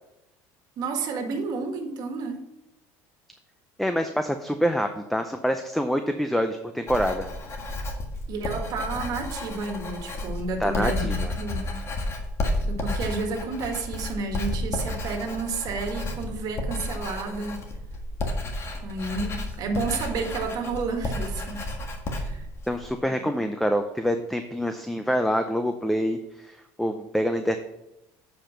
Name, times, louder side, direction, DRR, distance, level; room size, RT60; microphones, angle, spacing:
voice 1, 0.8-2.4 8.3-11.7 12.7-17.6 18.8-21.7 22.1-22.5 23.2-23.3, right 3 dB, 55° right, 4 dB, 1.7 m, -31 dB
voice 2, 3.8-7.3 10.6-11.3 22.7-27.6, equal, ahead, 7 dB, 0.5 m, -26 dB
Writing, 6.9-23.0, left 1 dB, 35° left, 1.6 m, -32 dB
7.7 x 5.1 x 5.7 m, 0.88 s
supercardioid pair, 115°, 8 cm